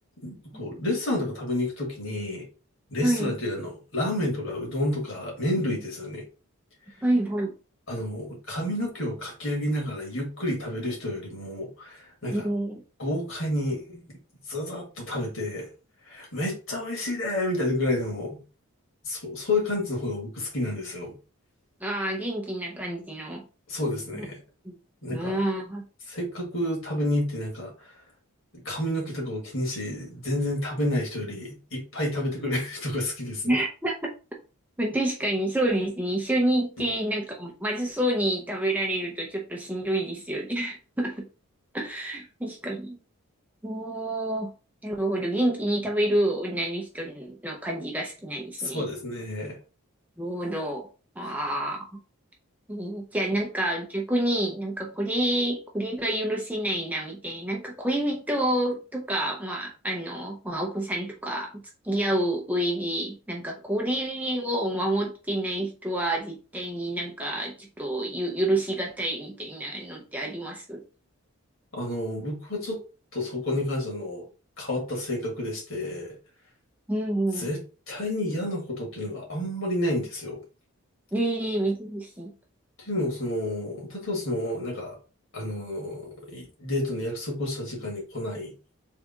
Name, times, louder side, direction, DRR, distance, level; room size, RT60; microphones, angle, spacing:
voice 1, 0.2-2.5 2.9-6.2 7.9-12.5 13.0-14.0 14.5-15.7 16.1-18.4 19.0-21.1 23.7-24.4 25.0-25.4 26.1-27.7 28.5-33.5 48.6-49.6 51.2-51.3 71.7-72.8 73.1-74.3 74.6-76.1 77.4-77.6 77.9-80.4 82.8-85.0 85.3-88.5, left 1 dB, 60° left, -1 dB, 2.0 m, -30 dB
voice 2, 3.0-3.3 7.0-7.5 12.3-12.8 21.8-23.4 24.1-24.3 24.6-24.8 25.1-25.8 33.4-34.1 34.8-41.3 41.7-43.0 43.6-44.5 44.8-48.8 50.2-50.9 51.2-52.0 52.7-70.8 76.9-77.5 81.1-82.3, right 1 dB, 5° right, 0 dB, 0.6 m, -28 dB
3.6 x 3.3 x 3.6 m, 0.33 s
head